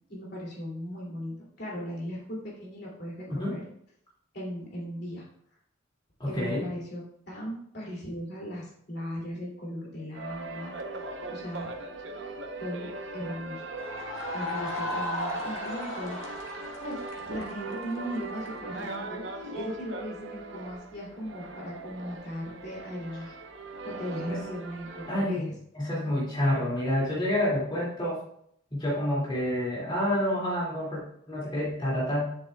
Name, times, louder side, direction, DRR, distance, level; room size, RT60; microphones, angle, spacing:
voice 1, 0.1-3.6 4.3-5.3 6.2-11.7 12.6-13.6 14.3-16.5 16.8-17.0 17.3-23.3 23.8-25.5, equal, 55° left, -4 dB, 2.7 m, -38 dB
voice 2, 3.3-3.6 6.2-6.6 24.2-24.4 25.1-25.5 25.7-28.2 28.7-31.0 31.3-32.2, left 1 dB, 25° left, -6 dB, 2.4 m, -28 dB
sound 1, 10.1-25.3, right 3 dB, 65° right, 0.8 m, -40 dB
sound 2, 13.8-18.5, left 1 dB, 90° left, 1.7 m, -35 dB
9.9 x 7.3 x 2.3 m, 0.69 s
head